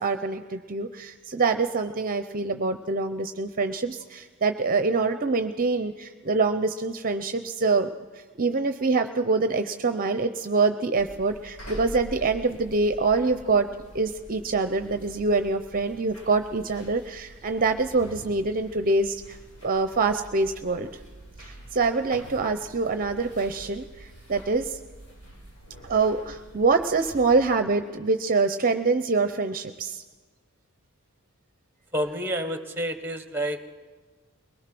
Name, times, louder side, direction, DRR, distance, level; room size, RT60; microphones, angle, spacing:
voice 1, 0.0-7.9 8.4-13.7 13.9-19.4 19.6-20.9 21.4-24.8 25.8-30.0, right 3 dB, 40° right, 9 dB, 0.7 m, -25 dB
sound 1, 11.0-27.6, right 1 dB, 75° left, 5.3 m, -46 dB
voice 2, 31.9-33.7, equal, 10° right, 9 dB, 1.4 m, -29 dB
22.0 x 20.0 x 6.1 m, 1.4 s
head